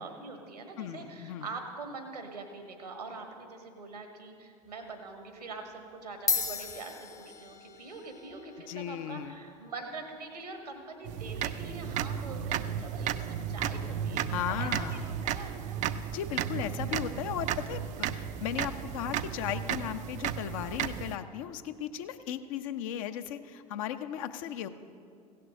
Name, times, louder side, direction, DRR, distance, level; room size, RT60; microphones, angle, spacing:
voice 1, 0.0-15.8 24.1-24.3, right 3 dB, 80° right, 4 dB, 1.6 m, -44 dB
voice 2, 0.8-1.4 8.7-9.3 14.3-15.0 16.1-24.7, left 10 dB, 55° left, 9 dB, 0.6 m, -36 dB
sound 1, 4.7-4.9 5.8-5.9 6.1-14.8, left 4 dB, 15° left, 0.7 m, -40 dB
sound 2, 11.0-21.2, right 9 dB, 40° right, 0.4 m, -34 dB
16.0 x 6.7 x 6.5 m, 2.4 s
figure-of-eight pair, 70°, 20 cm